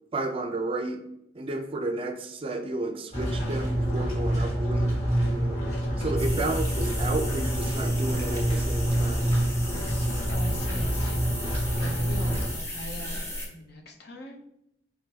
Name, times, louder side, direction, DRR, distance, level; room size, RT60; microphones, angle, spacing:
voice 1, 0.1-1.0 1.3-4.9 5.3-5.6 6.0-9.3, right 2 dB, 30° right, 5 dB, 0.4 m, -32 dB
sound 1, 3.1-12.5, right 1 dB, 40° left, 1.6 m, -27 dB
voice 2, 6.1-6.4 9.6-11.2 11.8-13.2 13.5-14.4, left 1 dB, 65° left, 2 dB, 0.7 m, -41 dB
sound 2, 6.2-13.5, left 1 dB, 15° left, 0.7 m, -35 dB
4.4 x 3.8 x 2.8 m, 0.78 s
head